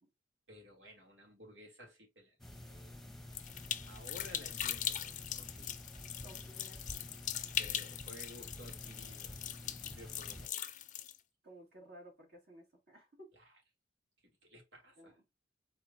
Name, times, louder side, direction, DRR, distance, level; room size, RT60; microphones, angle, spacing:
voice 1, 0.5-2.4 2.6-3.0 3.4-3.6 3.9-5.8 7.6-10.7 13.3-13.5 14.2-15.2, left 1 dB, 90° right, 2.9 m, -55 dB
sound 1, 2.4-10.5, left 1 dB, ahead, 0.9 m, -50 dB
sound 2, 3.3-11.2, left 10 dB, 45° left, 0.5 m, -41 dB
voice 2, 6.2-7.2 11.4-13.3 15.0-15.2, right 1 dB, 60° right, 2.6 m, -56 dB
4.8 x 3.9 x 2.7 m
head